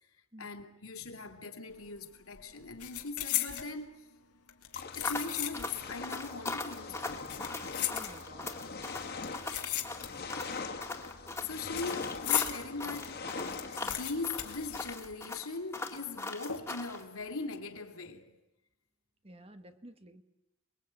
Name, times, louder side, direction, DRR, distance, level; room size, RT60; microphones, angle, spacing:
voice 1, 0.4-4.1 4.9-7.6 11.4-13.3 13.8-18.3, left 3 dB, 70° left, 2.9 m, -40 dB
sound 1, 1.7-2.0 2.3-3.7 4.5-5.9 6.2-6.3 7.1-8.5 9.2-10.4 10.7-12.6 13.0-13.1 13.3-15.4 15.7-15.8 16.5-16.9 17.3-17.6, left 13 dB, 90° left, 2.5 m, -36 dB
sound 2, 4.7-15.0, left 4 dB, 45° left, 2.2 m, -43 dB
sound 3, 5.0-17.0, left 2 dB, 10° left, 2.0 m, -40 dB
voice 2, 7.9-8.6 19.2-20.2, right 1 dB, 25° right, 1.3 m, -52 dB
29.5 x 22.0 x 8.9 m
head